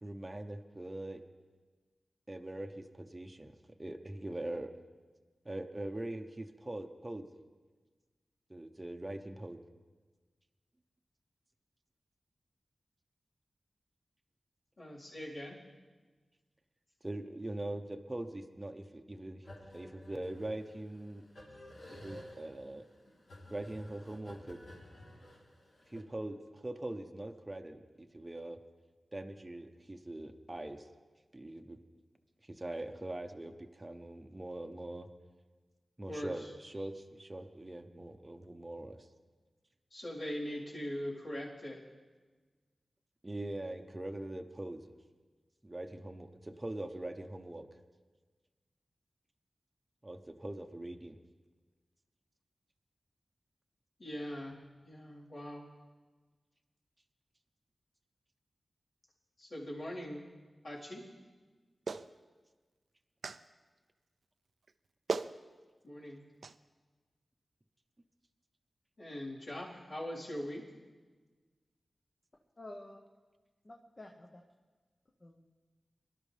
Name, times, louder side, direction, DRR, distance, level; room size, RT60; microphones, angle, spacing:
voice 1, 0.0-1.2 2.3-4.7 5.4-7.3 8.5-9.6 17.0-19.4 19.7-21.2 21.9-22.8 23.5-24.6 25.9-28.6 29.1-30.9 31.3-31.8 32.5-35.1 36.0-39.1 43.2-44.8 45.6-47.7 50.0-51.2, right 1 dB, 20° right, 4 dB, 0.8 m, -42 dB
voice 2, 14.8-15.6 36.1-36.5 39.9-41.8 54.0-54.6 54.8-55.7 59.4-60.3 60.6-61.0 65.8-66.2 69.0-70.6, equal, 60° left, -6 dB, 4.0 m, -41 dB
sound 1, 19.4-26.0, left 1 dB, 90° left, 3.4 m, -53 dB
Clapping, 61.9-62.1 63.2-63.4 64.7-64.8 65.1-65.3 66.4-66.6, right 4 dB, 75° right, 0.4 m, -36 dB
voice 3, 72.6-73.0 73.6-74.4 75.2-75.4, left 1 dB, 35° left, 1 dB, 1.0 m, -50 dB
23.5 x 12.0 x 3.4 m, 1.4 s
wide cardioid pair, 90°, 0 cm